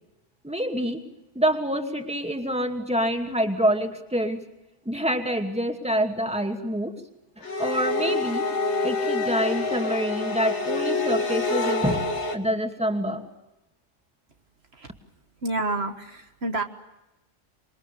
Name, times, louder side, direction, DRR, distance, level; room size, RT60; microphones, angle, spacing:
voice 1, 0.4-1.0 1.3-4.4 4.9-6.9 7.6-8.4 8.8-13.2, equal, 5° right, 5 dB, 2.5 m, -26 dB
sound 1, 7.4-12.3, left 3 dB, 70° left, 2.3 m, -26 dB
voice 2, 15.4-16.6, right 2 dB, 60° right, 6 dB, 1.9 m, -29 dB
27.0 x 23.0 x 8.6 m, 0.97 s
omnidirectional pair, 1.2 m